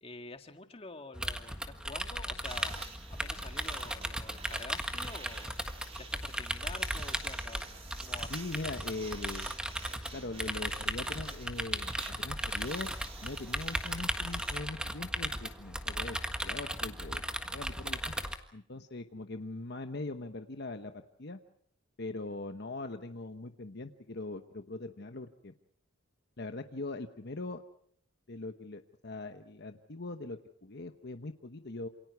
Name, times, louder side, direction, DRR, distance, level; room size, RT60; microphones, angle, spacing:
voice 1, 0.0-5.6 6.0-7.6 8.0-8.4, left 3 dB, 30° left, 7 dB, 1.8 m, -48 dB
sound 1, 1.1-18.4, right 1 dB, 5° right, 1.6 m, -37 dB
sound 2, 2.4-14.6, right 5 dB, 30° right, 3.1 m, -51 dB
voice 2, 8.3-9.5 10.1-12.9 13.2-17.2 17.5-18.1 18.5-21.4 22.0-25.5 26.4-27.6 28.3-31.9, left 2 dB, 55° left, 7 dB, 1.1 m, -41 dB
28.0 x 28.0 x 4.7 m, 0.65 s
head